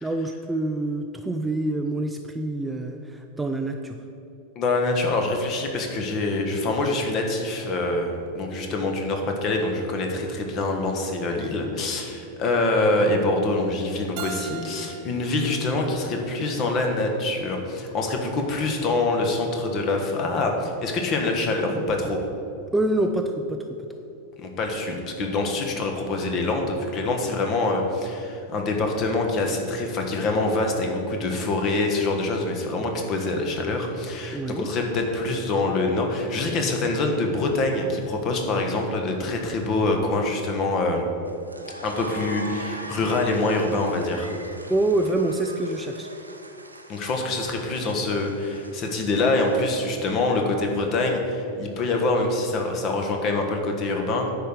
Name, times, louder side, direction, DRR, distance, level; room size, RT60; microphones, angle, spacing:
voice 1, 0.0-4.0 22.7-23.7 34.3-34.7 44.7-46.1, right 2 dB, 10° right, 5 dB, 0.4 m, -26 dB
voice 2, 4.5-22.2 24.4-41.1 41.8-44.3 46.9-54.3, left 2 dB, 35° left, 3 dB, 1.3 m, -25 dB
Keyboard (musical), 14.2-17.0, right 8 dB, 45° right, 0.6 m, -40 dB
sound 1, 41.3-50.6, right 2 dB, 85° right, 0.7 m, -42 dB
9.9 x 4.6 x 6.7 m, 2.7 s
figure-of-eight pair, 90°, 0 cm